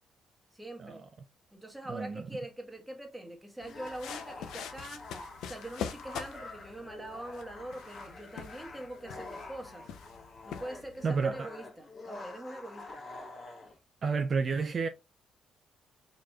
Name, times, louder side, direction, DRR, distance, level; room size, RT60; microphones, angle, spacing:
voice 1, 0.5-1.0 1.5-5.1 5.4-9.9 10.4-13.0, right 1 dB, 5° right, 1.2 m, -43 dB
voice 2, 1.9-2.2 11.0-11.5 14.0-14.9, right 5 dB, 45° right, 0.4 m, -30 dB
sound 1, 3.6-11.1, left 8 dB, 85° left, 0.5 m, -44 dB
sound 2, 3.6-13.8, left 2 dB, 50° left, 1.3 m, -47 dB
4.7 x 3.0 x 2.3 m
cardioid pair, 90°, 0 cm